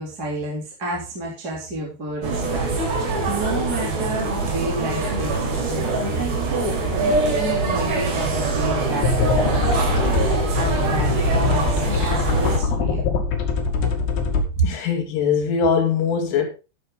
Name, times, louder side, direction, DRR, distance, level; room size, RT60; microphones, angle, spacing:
voice 1, 0.0-10.2 10.5-13.1 14.6-14.7, right 2 dB, 25° right, 3.1 m, -30 dB
sound 1, 2.2-12.6, right 3 dB, 60° right, 5.3 m, -23 dB
sound 2, 9.0-14.4, left 4 dB, 60° left, 3.7 m, -23 dB
voice 2, 14.6-16.5, left 6 dB, 85° left, 4.9 m, -21 dB
13.5 x 7.6 x 3.8 m
omnidirectional pair, 5.5 m